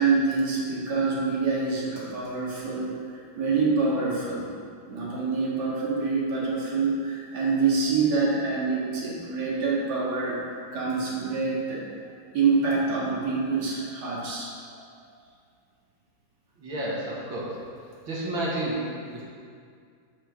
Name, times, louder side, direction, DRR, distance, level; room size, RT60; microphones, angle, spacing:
voice 1, 0.0-2.9 3.4-4.5 4.9-10.4 10.7-11.9 12.3-14.5, right 4 dB, 60° right, -6 dB, 2.4 m, -26 dB
voice 2, 16.6-17.6 18.1-19.2, right 1 dB, 85° right, -6 dB, 2.8 m, -31 dB
9.1 x 6.5 x 6.4 m, 2.2 s
omnidirectional pair, 2.1 m